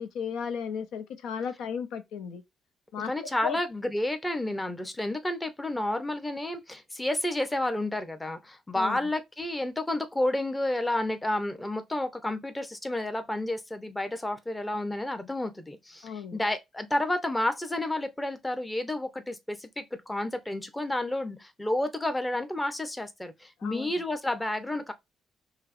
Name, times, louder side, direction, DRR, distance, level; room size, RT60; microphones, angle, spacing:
voice 1, 0.0-2.4 2.9-3.1 3.4-3.6 8.7-9.0 16.0-16.4 23.6-23.9, left 7 dB, 85° left, 0.5 m, -34 dB
voice 2, 3.0-24.9, left 1 dB, 15° left, 0.7 m, -30 dB
5.3 x 2.1 x 2.5 m
cardioid pair, 90°, 0 cm